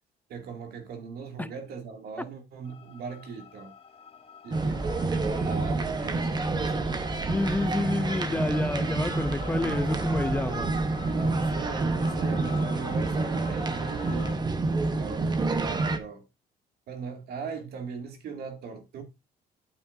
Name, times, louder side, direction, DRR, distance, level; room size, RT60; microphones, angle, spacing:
voice 1, 0.3-3.7 4.4-7.1 11.1-14.4 14.8-16.2 16.9-19.0, right 5 dB, 65° right, 2.3 m, -39 dB
sound 1, 2.6-14.4, left 7 dB, 35° left, 1.3 m, -46 dB
sound 2, 4.5-16.0, right 3 dB, 25° right, 1.0 m, -28 dB
voice 2, 7.3-10.7, left 2 dB, 10° left, 0.4 m, -29 dB
8.9 x 7.4 x 2.7 m
cardioid pair, 110°, 17 cm